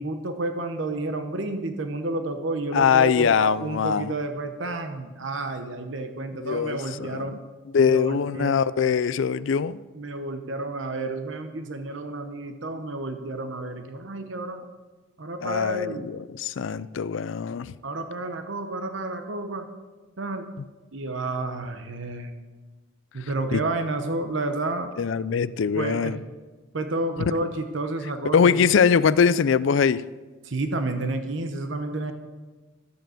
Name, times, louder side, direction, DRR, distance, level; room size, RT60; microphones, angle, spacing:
voice 1, 0.0-7.4 7.9-8.6 9.9-14.6 15.2-16.1 17.8-19.7 20.2-20.5 20.9-22.3 23.1-24.9 25.7-26.1 26.7-28.6 30.4-32.1, right 2 dB, 70° right, 0.9 m, -30 dB
voice 2, 2.7-4.1 6.4-7.3 7.7-9.8 15.4-17.7 23.5-23.6 25.0-26.2 28.3-30.1, left 6 dB, 70° left, 0.4 m, -22 dB
12.5 x 6.8 x 7.7 m
head